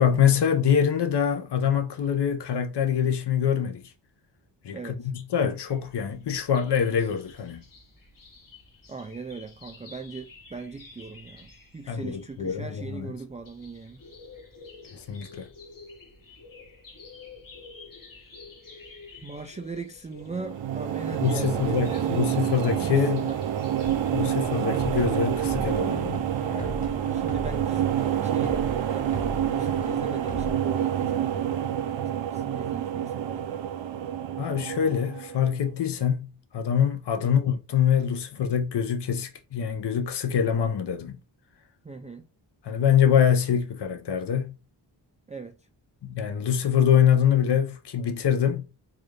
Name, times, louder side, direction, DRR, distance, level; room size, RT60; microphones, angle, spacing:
voice 1, 0.0-3.8 4.6-4.9 5.3-7.6 11.9-12.7 12.9-13.1 14.9-15.5 21.2-23.3 24.1-26.8 34.4-36.3 36.5-41.2 42.6-44.5 46.0-48.6, left 8 dB, 65° left, 0.8 m, -24 dB
voice 2, 4.7-5.1 8.9-14.0 19.2-22.3 22.8-23.4 26.7-28.6 28.9-33.5 37.2-37.3 41.8-42.3 45.3-45.7, right 4 dB, 20° right, 0.3 m, -39 dB
sound 1, 5.7-24.4, left 3 dB, 45° left, 1.2 m, -49 dB
sound 2, 20.3-35.6, right 10 dB, 85° right, 0.6 m, -28 dB
sound 3, 23.8-30.5, left 1 dB, 15° left, 1.0 m, -39 dB
3.9 x 2.4 x 3.2 m
cardioid pair, 75°, 44 cm